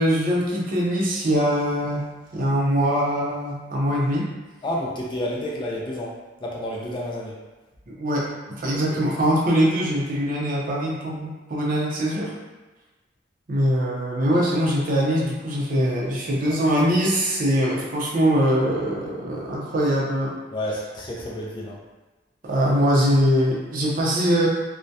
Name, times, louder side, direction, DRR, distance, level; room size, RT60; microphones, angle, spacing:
voice 1, 0.0-4.3 7.9-12.3 13.5-20.3 22.4-24.5, equal, 50° right, -4 dB, 0.5 m, -22 dB
voice 2, 4.6-7.4 8.7-9.0 20.5-21.8, left 1 dB, 25° left, -3 dB, 0.3 m, -30 dB
2.2 x 2.1 x 2.6 m, 1.2 s
head